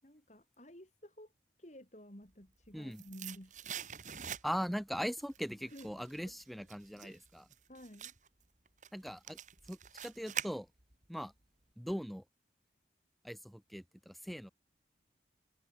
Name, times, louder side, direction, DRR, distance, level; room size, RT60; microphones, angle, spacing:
voice 1, 0.0-1.3 1.6-3.8 5.6-6.4 7.0-7.2 7.7-8.1, equal, 40° left, 5.1 m, -53 dB
sound 1, 2.4-4.8 5.2-11.1 11.4-11.5, right 9 dB, 45° right, 4.3 m, -45 dB
voice 2, 2.7-3.0 4.4-7.4 8.9-9.4 9.7-10.7 11.1-11.3 11.8-12.2 13.2-14.5, equal, ahead, 2.0 m, -40 dB
head